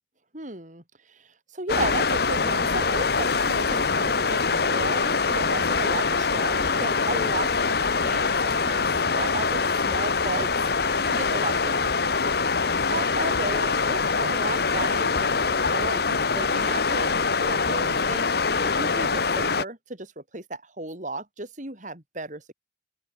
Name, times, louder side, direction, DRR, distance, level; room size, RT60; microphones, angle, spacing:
voice 1, 0.3-10.5 10.8-12.3 12.8-17.1 17.4-22.5, right 2 dB, 45° right, 5.1 m, -35 dB
sound 1, 1.7-19.6, left 4 dB, 60° left, 1.2 m, -24 dB
open air
head